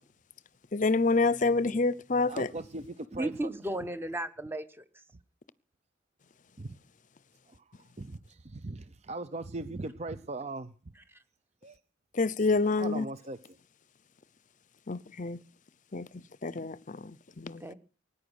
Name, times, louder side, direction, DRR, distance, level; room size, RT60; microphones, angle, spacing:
voice 1, 0.7-2.5 12.1-13.1 14.9-15.4 15.9-17.7, left 3 dB, 40° left, 0.7 m, -28 dB
voice 2, 2.3-3.5 6.6-6.8 7.5-10.7 11.6-11.8 12.8-13.4, right 2 dB, 35° right, 0.7 m, -39 dB
voice 3, 3.2-4.8 17.6-17.7, right 1 dB, 10° right, 1.2 m, -34 dB
19.0 x 10.0 x 6.4 m
head